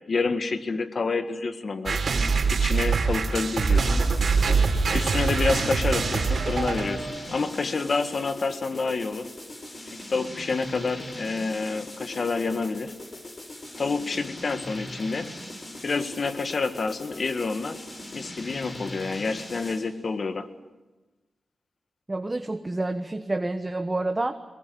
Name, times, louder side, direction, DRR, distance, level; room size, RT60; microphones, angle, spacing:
voice 1, 0.0-2.0 2.5-4.1 4.9-9.3 9.9-12.9 13.8-15.3 15.8-17.9 18.1-20.5, left 4 dB, 55° left, 9 dB, 1.8 m, -28 dB
sound 1, 1.9-7.2, right 4 dB, 70° right, 3.3 m, -24 dB
sound 2, 3.7-20.0, left 1 dB, 40° left, 6.3 m, -41 dB
voice 2, 22.1-24.3, right 2 dB, 25° right, 7 dB, 1.3 m, -28 dB
22.5 x 22.0 x 9.4 m, 1.1 s
cardioid pair, 65°, 0 cm